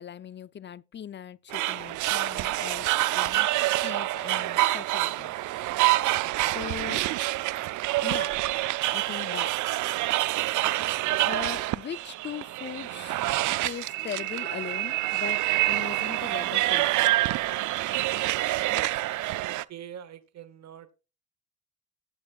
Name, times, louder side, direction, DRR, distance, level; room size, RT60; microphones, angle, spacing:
voice 1, 0.0-3.5 3.8-5.3 6.4-7.0 8.0-8.3 8.9-9.5 11.2-13.3 13.6-17.0, left 9 dB, 35° left, 0.5 m, -39 dB
sound 1, 1.5-19.6, right 17 dB, 80° right, 0.5 m, -27 dB
voice 2, 19.4-20.9, right 10 dB, 60° right, 1.0 m, -44 dB
15.5 x 8.7 x 2.4 m
cardioid pair, 90°, 30 cm